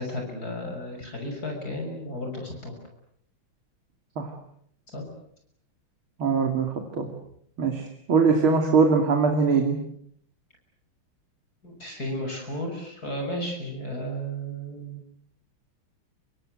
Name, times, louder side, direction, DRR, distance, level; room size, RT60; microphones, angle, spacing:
voice 1, 0.0-2.7 4.9-5.0 11.6-15.0, equal, 45° left, 2 dB, 6.8 m, -33 dB
voice 2, 6.2-7.1 7.6-7.8 8.1-9.8, right 5 dB, 75° right, 4 dB, 3.5 m, -21 dB
28.5 x 25.0 x 7.9 m, 0.68 s
omnidirectional pair, 2.3 m